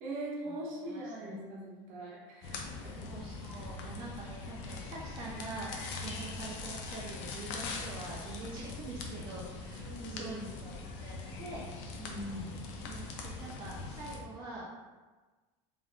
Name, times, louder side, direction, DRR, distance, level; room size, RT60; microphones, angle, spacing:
voice 1, 0.0-3.1 9.8-10.6 11.9-12.5, right 1 dB, 55° right, -3 dB, 0.8 m, -42 dB
voice 2, 0.8-1.4 3.0-5.7 6.0-11.6 12.3-12.5 12.9-14.7, right 2 dB, 30° right, -5 dB, 0.4 m, -45 dB
sound 1, 2.4-14.2, left 3 dB, 70° left, 0.5 m, -42 dB
3.4 x 2.4 x 2.4 m, 1.3 s
cardioid pair, 155°, 15 cm